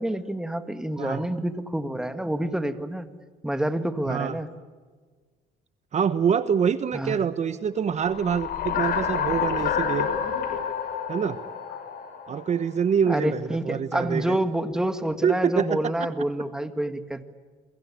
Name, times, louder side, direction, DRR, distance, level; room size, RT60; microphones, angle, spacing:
voice 1, 0.0-3.1 3.4-4.5 6.9-7.2 13.1-17.2, right 1 dB, 5° right, 9 dB, 1.8 m, -28 dB
voice 2, 5.9-10.1 11.1-11.4 12.3-14.4 15.2-15.8, right 7 dB, 40° right, 12 dB, 1.1 m, -25 dB
sound 1, 8.0-12.6, left 7 dB, 65° left, 6.0 m, -29 dB
29.0 x 23.0 x 8.7 m, 1.5 s
cardioid pair, 110°, 17 cm